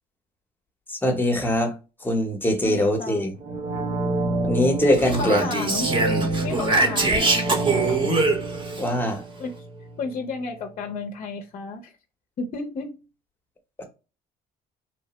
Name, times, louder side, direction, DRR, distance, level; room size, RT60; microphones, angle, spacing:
voice 1, 0.9-1.7 2.0-3.3 4.4-5.5 8.8-9.2 13.8-13.9, left 1 dB, 10° left, 0.8 m, -22 dB
voice 2, 2.6-3.3 5.0-6.0 6.4-8.1 9.4-9.5 10.0-11.9 12.4-13.0, left 4 dB, 45° left, 0.6 m, -32 dB
sound 1, 3.4-10.2 10.5-10.6, right 2 dB, 60° right, 0.7 m, -29 dB
Speech, 4.9-8.8, right 3 dB, 30° right, 0.8 m, -23 dB
3.1 x 2.0 x 2.9 m
cardioid pair, 110°, 17 cm